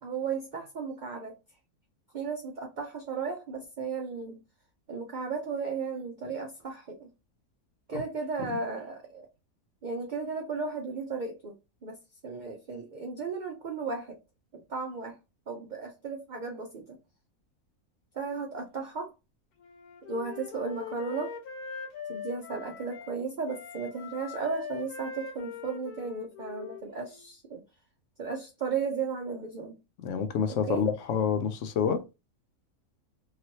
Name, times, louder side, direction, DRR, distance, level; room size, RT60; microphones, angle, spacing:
voice 1, 0.0-1.4 2.1-4.4 4.9-7.1 7.9-9.3 9.8-11.6 11.8-12.0 12.2-14.2 14.5-15.2 15.5-17.0 18.1-19.1 20.1-21.4 22.1-27.6 28.2-29.8 30.5-30.9, right 5 dB, 55° right, 0.5 m, -35 dB
Wind instrument woodwind instrument, 19.6-23.1 23.5-27.2, left 6 dB, 85° left, 1.2 m, -42 dB
voice 2, 30.0-32.0, left 7 dB, 65° left, 0.8 m, -28 dB
2.9 x 2.9 x 2.8 m
omnidirectional pair, 1.5 m